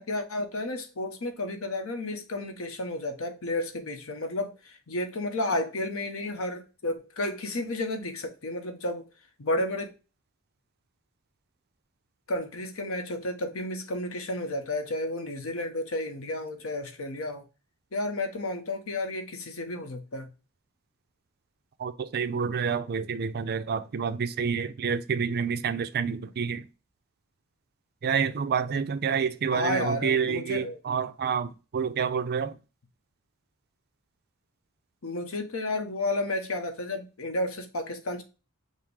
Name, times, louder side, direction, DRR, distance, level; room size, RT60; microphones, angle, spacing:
voice 1, 0.0-9.0 9.4-9.9 12.3-17.4 17.9-20.3 29.5-30.8 35.0-38.2, left 1 dB, 70° left, 0.9 m, -32 dB
voice 2, 21.8-26.6 28.0-32.6, right 6 dB, 50° right, 0.4 m, -28 dB
5.6 x 2.0 x 4.7 m
head